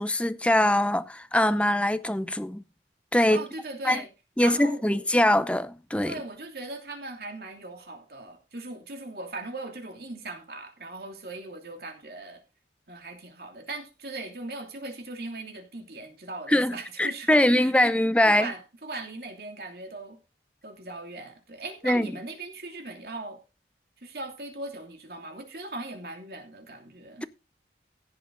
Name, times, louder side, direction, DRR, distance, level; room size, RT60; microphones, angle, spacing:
voice 1, 0.0-2.6 3.1-3.4 3.8-4.0 4.4-6.1 16.5-18.5 21.8-22.1, left 1 dB, 5° left, 0.6 m, -23 dB
voice 2, 3.3-4.1 4.4-5.0 6.0-12.4 12.9-20.2 20.6-23.4 24.0-27.3, right 2 dB, 60° right, 2.8 m, -39 dB
16.0 x 7.5 x 3.9 m
head